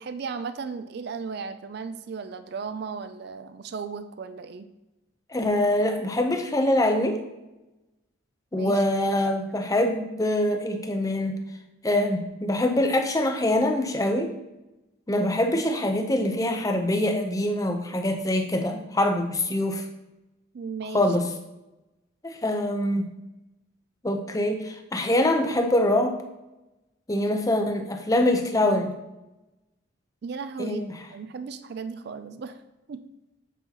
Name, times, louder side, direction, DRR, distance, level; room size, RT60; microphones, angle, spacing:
voice 1, 0.0-4.7 8.5-9.4 20.5-21.0 30.2-30.8 31.1-32.6 32.9-33.0, right 5 dB, 55° right, 10 dB, 0.3 m, -35 dB
voice 2, 5.3-7.2 8.5-11.4 11.8-14.3 15.1-19.9 20.9-21.3 22.2-23.0 24.0-26.2 27.1-28.9 30.6-30.9, left 1 dB, 15° left, 4 dB, 0.6 m, -24 dB
8.1 x 5.5 x 2.9 m, 1.0 s
head